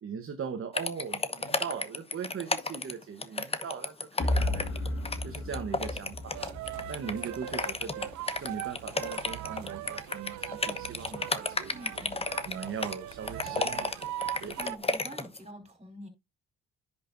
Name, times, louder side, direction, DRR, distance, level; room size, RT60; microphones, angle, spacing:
voice 1, 0.0-4.7 5.2-6.4 6.9-8.1 8.4-11.7 12.5-13.9 14.4-14.7, right 6 dB, 45° right, 1.2 m, -39 dB
sound 1, 0.7-15.4, left 3 dB, 20° left, 1.0 m, -32 dB
sound 2, 4.2-8.1, left 1 dB, 45° left, 1.7 m, -33 dB
sound 3, 6.3-14.8, right 13 dB, 70° right, 0.6 m, -40 dB
voice 2, 11.7-12.2 14.6-16.1, equal, 20° right, 4.7 m, -46 dB
10.0 x 6.6 x 2.6 m
cardioid pair, 90°, 30 cm